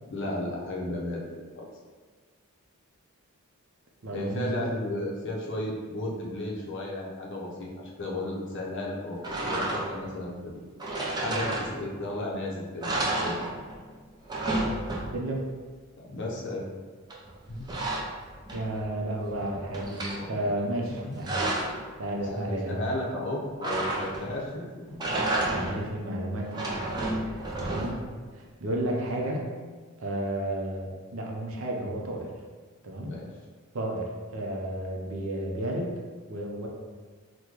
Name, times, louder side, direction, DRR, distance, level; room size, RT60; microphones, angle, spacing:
voice 1, 0.1-1.7 4.1-9.2 9.5-10.6 11.1-13.3 16.0-16.6 17.5-17.7 20.2-21.2 22.2-25.0 33.0-33.3, left 1 dB, 55° left, -2 dB, 0.6 m, -34 dB
voice 2, 4.0-4.6 15.1-15.5 18.5-21.4 22.0-22.8 25.5-28.1 28.3-29.4 30.0-32.3 32.8-33.1 33.7-35.9 36.3-36.7, right 1 dB, 65° right, 0 dB, 0.6 m, -32 dB
sound 1, 9.2-10.1 10.8-12.1 12.4-12.5 12.8-13.9 14.1-15.4 17.1-18.9 19.3-20.2 20.9-21.8 23.6-24.4 24.9-25.9 26.4-28.2, right 2 dB, 20° right, 0.4 m, -31 dB
3.0 x 2.2 x 3.7 m, 1.5 s
head